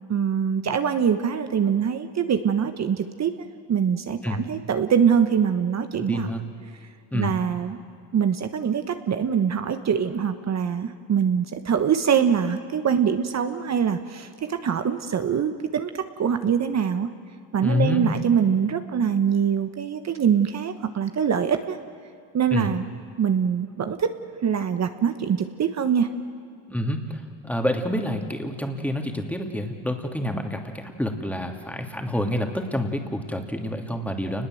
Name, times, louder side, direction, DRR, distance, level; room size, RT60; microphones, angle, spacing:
voice 1, 0.1-3.3 3.7-6.3 7.1-7.8 8.1-17.1 17.5-21.8 22.3-22.8 23.2-24.2 24.4-26.1, right 7 dB, 35° right, 8 dB, 1.3 m, -23 dB
voice 2, 5.9-6.4 7.1-7.3 17.6-18.0 22.5-22.7 26.7-34.5, left 1 dB, 5° left, 3 dB, 2.8 m, -28 dB
28.0 x 21.0 x 7.9 m, 2.4 s
cardioid pair, 105°, 44 cm